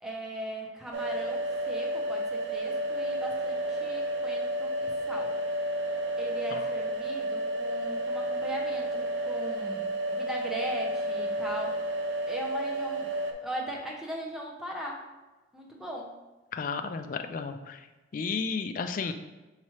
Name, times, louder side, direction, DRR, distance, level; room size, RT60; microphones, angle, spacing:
voice 1, 0.0-5.3 6.2-11.8 12.3-13.1 13.4-15.0 15.5-16.1, equal, ahead, -2 dB, 0.6 m, -39 dB
sound 1, 0.9-13.3, right 1 dB, 65° right, 0.5 m, -31 dB
voice 2, 16.5-17.8 18.1-19.1, left 5 dB, 45° left, 8 dB, 0.3 m, -33 dB
5.6 x 3.0 x 2.9 m, 1.1 s
head